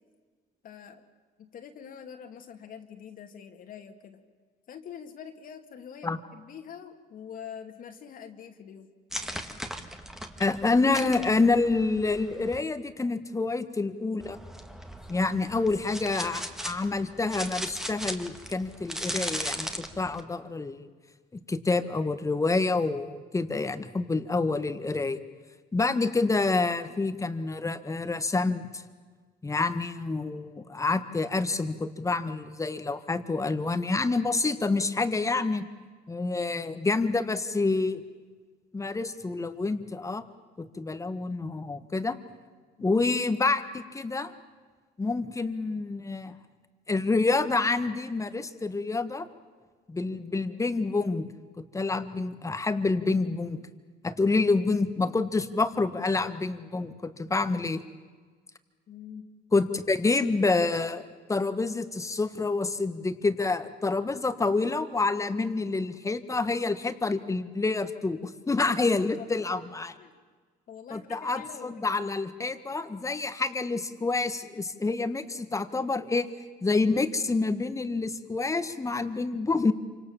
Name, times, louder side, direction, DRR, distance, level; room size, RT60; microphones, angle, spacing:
voice 1, 0.6-1.0 1.4-4.2 4.7-8.9 42.8-43.1 58.9-59.3 69.2-69.5 70.0-70.2 70.7-72.0, left 8 dB, 55° left, 6 dB, 2.4 m, -45 dB
sound 1, 9.1-12.6 14.2-20.2, equal, ahead, 1.9 m, -38 dB
voice 2, 10.4-14.4 15.1-19.7 20.0-20.9 21.5-25.2 25.7-28.8 29.4-35.6 36.1-38.0 38.7-40.2 40.6-42.2 42.8-44.3 45.0-46.3 46.9-49.3 49.9-51.3 51.6-53.6 54.0-57.8 59.5-69.9 70.9-76.3 76.6-79.7, left 3 dB, 20° left, 10 dB, 1.7 m, -27 dB
28.0 x 25.5 x 7.3 m, 1.5 s
cardioid pair, 110°, 17 cm